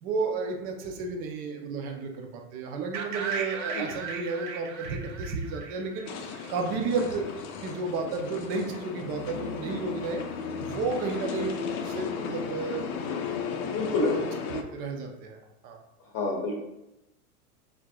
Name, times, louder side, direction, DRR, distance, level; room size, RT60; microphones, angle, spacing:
voice 1, 0.0-7.2 7.6-10.2 10.6-12.9 14.1-15.4 15.6-15.8, right 4 dB, 20° right, 3 dB, 0.4 m, -32 dB
sound 1, 2.9-6.8, right 5 dB, 55° right, 0.8 m, -36 dB
sound 2, 6.1-14.6, left 6 dB, 70° left, 0.7 m, -35 dB
voice 2, 13.7-14.2 16.1-16.6, left 2 dB, 35° left, 0 dB, 0.8 m, -27 dB
4.5 x 3.7 x 2.2 m, 0.90 s
hypercardioid pair, 110°, 46 cm